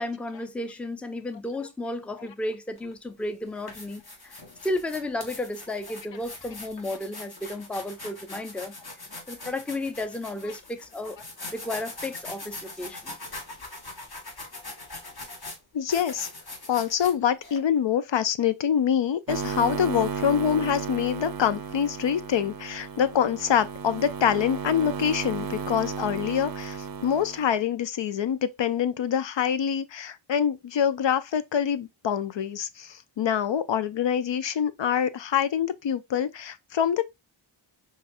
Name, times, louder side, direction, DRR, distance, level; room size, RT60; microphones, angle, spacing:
voice 1, 0.0-8.8 9.3-11.2 11.5-13.1, left 1 dB, 5° left, 0.5 m, -33 dB
sound 1, 2.8-2.9 3.5-17.6, left 2 dB, 50° left, 1.5 m, -42 dB
voice 2, 15.7-16.3 16.7-37.0, left 8 dB, 65° left, 0.5 m, -25 dB
sound 2, 19.3-27.5, right 5 dB, 45° right, 0.5 m, -34 dB
5.6 x 2.4 x 2.5 m
wide cardioid pair, 50°, 48 cm